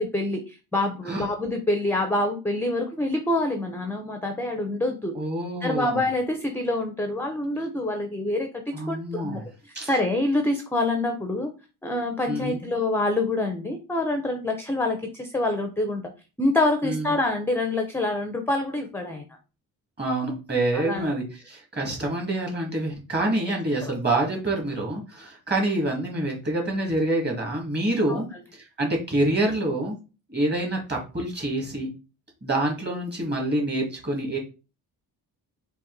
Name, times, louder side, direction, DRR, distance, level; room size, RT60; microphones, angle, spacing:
voice 1, 0.0-5.2 5.6-9.4 9.8-11.5 11.8-16.0 16.4-19.2 20.7-21.0 23.8-23.9 28.1-28.2, left 2 dB, 5° left, 5 dB, 0.5 m, -26 dB
voice 2, 5.1-6.0 8.7-9.5 9.7-9.9 12.3-12.6 16.8-17.1 20.0-28.3 28.5-30.0 30.3-31.9 32.4-34.4, right 1 dB, 25° right, 0 dB, 1.8 m, -27 dB
4.2 x 2.6 x 3.9 m, 0.32 s
cardioid pair, 115°, 37 cm